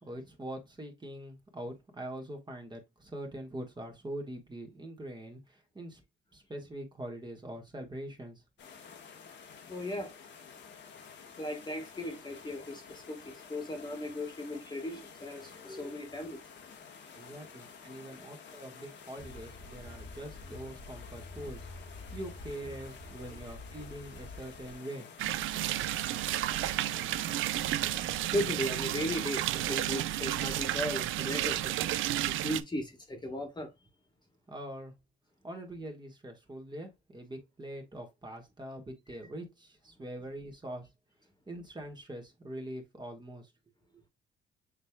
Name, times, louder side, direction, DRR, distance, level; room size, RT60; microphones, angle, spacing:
voice 1, 0.0-6.0 6.3-8.4 17.1-25.1 34.5-34.9 35.4-40.9 41.5-43.5 43.9-44.0, right 1 dB, 20° right, 1.6 m, -43 dB
sound 1, 8.6-28.5, left 6 dB, 65° left, 1.4 m, -51 dB
voice 2, 9.7-10.1 11.4-16.4 28.3-31.7 32.3-33.7, left 1 dB, 20° left, 1.5 m, -37 dB
sound 2, 19.2-24.7, left 2 dB, 5° left, 1.6 m, -48 dB
sound 3, 25.2-32.6, right 14 dB, 85° right, 0.5 m, -32 dB
6.6 x 3.2 x 2.3 m
cardioid pair, 90°, 20 cm